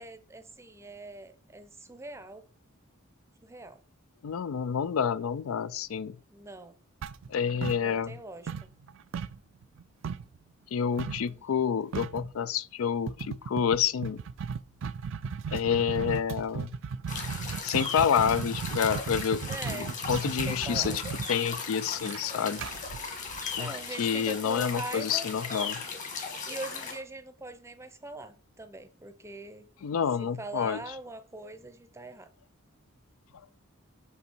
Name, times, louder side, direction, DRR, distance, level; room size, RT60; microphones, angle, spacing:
voice 1, 0.0-2.4 3.4-3.8 6.3-6.8 7.8-8.7 11.2-11.4 19.4-21.0 23.6-25.3 26.5-29.7 30.2-32.3, right 2 dB, 15° right, 0.6 m, -42 dB
voice 2, 4.2-6.2 7.3-8.1 10.7-14.2 15.5-16.7 17.6-19.4 19.7-20.9 21.3-22.6 23.6-25.8 29.8-30.8, left 7 dB, 80° left, 0.4 m, -28 dB
sound 1, 7.0-8.2 8.5-10.4 11.0-11.3 11.6-11.7 11.9-12.3 13.1-23.9, right 6 dB, 60° right, 0.4 m, -36 dB
sound 2, 17.1-27.0, left 4 dB, 40° left, 1.6 m, -37 dB
6.1 x 5.5 x 4.4 m
head